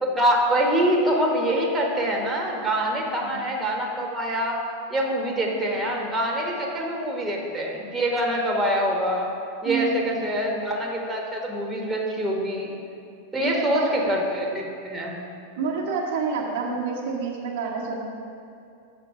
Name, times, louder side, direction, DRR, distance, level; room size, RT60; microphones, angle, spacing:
voice 1, 0.0-4.6 4.9-9.3 9.6-12.7 13.3-15.2, equal, 10° right, -2 dB, 1.3 m, -25 dB
voice 2, 3.1-3.4 9.6-10.6 13.4-13.9 15.6-18.0, right 4 dB, 55° right, -3 dB, 1.3 m, -28 dB
7.8 x 5.7 x 5.8 m, 2.6 s
figure-of-eight pair, 90°, 0 cm